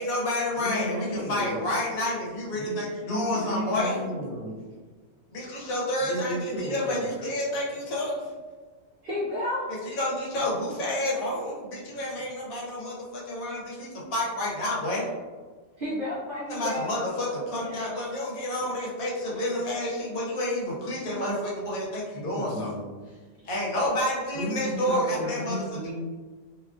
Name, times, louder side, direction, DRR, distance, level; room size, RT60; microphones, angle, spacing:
voice 1, 0.0-4.0 5.3-8.2 9.7-15.1 16.5-22.7 23.4-25.6, left 1 dB, 85° left, -4 dB, 1.2 m, -29 dB
voice 2, 0.6-1.7 2.5-2.8 3.0-4.5 6.0-7.1 22.1-23.5 24.3-25.9, equal, 50° left, -6 dB, 0.5 m, -34 dB
voice 3, 9.0-9.7 15.8-17.3 17.6-18.0, left 1 dB, 60° right, -7 dB, 0.5 m, -32 dB
2.7 x 2.3 x 2.4 m, 1.4 s
omnidirectional pair, 1.4 m